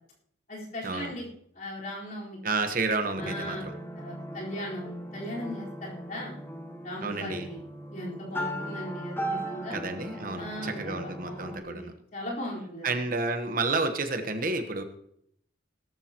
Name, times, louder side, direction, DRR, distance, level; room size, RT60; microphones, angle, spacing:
voice 1, 0.5-1.2 1.6-2.4 3.2-3.6 3.9-6.4 6.8-7.6 7.9-9.8 10.4-12.9, equal, 45° left, -5 dB, 4.3 m, -38 dB
voice 2, 2.4-3.7 7.0-7.5 9.7-11.9 12.8-14.8, right 3 dB, 45° right, 7 dB, 1.1 m, -30 dB
sound 1, 3.2-11.6, equal, 10° left, 0.9 m, -38 dB
17.5 x 13.5 x 3.0 m, 0.70 s
head